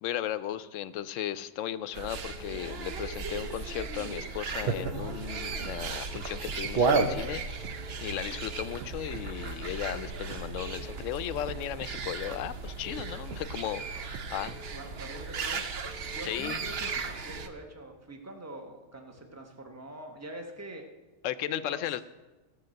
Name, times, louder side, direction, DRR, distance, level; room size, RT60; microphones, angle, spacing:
voice 1, 0.0-14.6 16.2-16.6 21.2-22.0, left 11 dB, 75° left, 14 dB, 0.9 m, -36 dB
Keyboard (musical) / Alarm, 1.6-1.9 2.3-2.7 3.1-3.4 3.8-4.2 4.6-5.0 5.3-5.7 6.1-6.5 6.8-7.2 7.6-8.0 8.3-8.7 9.1-9.5 9.8-10.2 10.6-11.0 11.3-11.7 12.1-12.5 12.8-13.2 13.6-14.0 14.3-14.7 15.1-15.5 15.8-16.2 16.6-17.0 17.3-17.7, left 2 dB, 40° left, 1.0 m, -50 dB
sound 1, 1.9-17.5, right 4 dB, 55° right, 1.0 m, -34 dB
sound 2, 4.3-5.2 5.6-5.8 6.1-7.2 7.6-7.8 8.3-8.5 8.8-9.3 9.6-9.8 10.3-10.5 11.0-11.1 11.5-12.5 13.0-13.8 14.1-14.7, right 9 dB, 90° right, 1.0 m, -47 dB
voice 2, 14.7-15.7 16.1-20.9 21.5-21.9, right 1 dB, 15° right, 3 dB, 1.1 m, -44 dB
15.0 x 5.7 x 7.6 m, 1.2 s
omnidirectional pair, 1.3 m